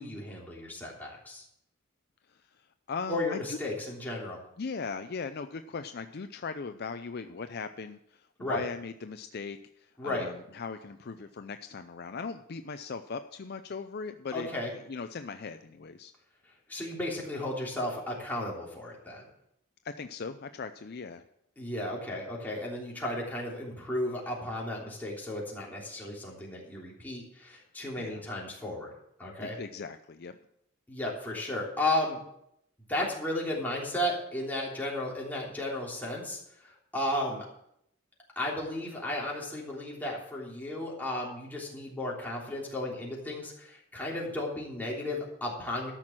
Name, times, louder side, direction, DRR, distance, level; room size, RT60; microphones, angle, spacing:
voice 1, 0.0-1.4 3.1-4.4 8.4-8.6 10.0-10.3 14.3-14.7 16.7-19.2 21.6-28.9 29.2-29.6 30.9-32.2 32.9-37.5 38.4-45.9, left 1 dB, 10° left, -4 dB, 3.3 m, -34 dB
voice 2, 2.3-3.6 4.6-16.1 19.8-21.2 28.0-28.2 29.4-30.4, left 5 dB, 50° left, 9 dB, 0.5 m, -39 dB
13.5 x 6.1 x 7.4 m, 0.76 s
head